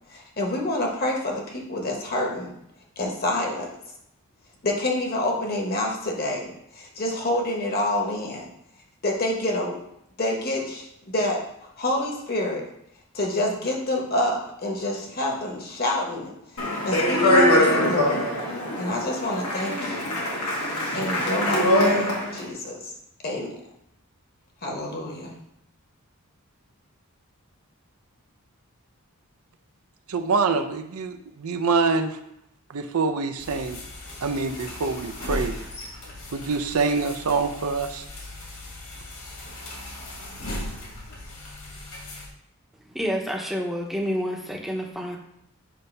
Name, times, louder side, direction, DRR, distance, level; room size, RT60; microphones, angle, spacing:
voice 1, 0.1-2.5 3.0-3.7 4.6-8.5 9.0-9.8 10.2-11.4 11.8-12.6 13.1-18.3 18.8-20.2 20.9-22.9 23.2-23.5 24.6-25.4, left 1 dB, 45° left, 1.2 m, -27 dB
Speech, 16.6-22.4, left 1 dB, 80° left, 1.3 m, -23 dB
voice 2, 30.1-32.2 32.7-33.8 34.2-35.5 36.3-38.1, right 4 dB, 75° right, 0.5 m, -25 dB
sound 1, 33.4-42.3, left 1 dB, 60° left, 1.7 m, -38 dB
voice 3, 42.9-45.2, equal, ahead, 0.7 m, -29 dB
7.4 x 2.7 x 5.4 m
head